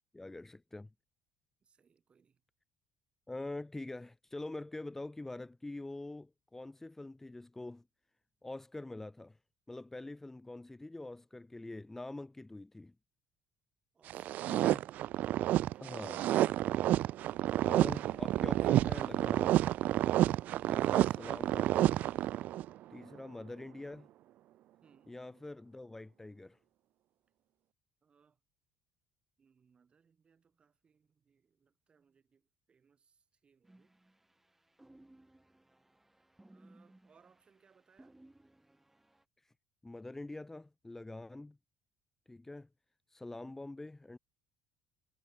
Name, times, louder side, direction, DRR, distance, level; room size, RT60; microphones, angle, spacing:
voice 1, 0.1-0.9 3.3-7.8 8.4-9.4 9.7-12.9 14.5-14.8 15.8-16.3 17.6-19.6 20.7-22.0 22.9-24.1 25.1-26.6 39.8-41.6 42.3-42.7 43.1-44.2, left 2 dB, 10° left, 1.6 m, -45 dB
voice 2, 1.6-2.4 13.9-14.8 15.4-15.8 24.8-25.2 28.0-28.4 29.4-32.4 32.7-33.9 36.5-38.2, right 6 dB, 35° right, 7.1 m, -68 dB
sound 1, 14.1-22.7, right 14 dB, 65° right, 0.6 m, -30 dB
sound 2, 33.6-39.2, right 1 dB, 10° right, 6.1 m, -62 dB
supercardioid pair, 85°, 3 cm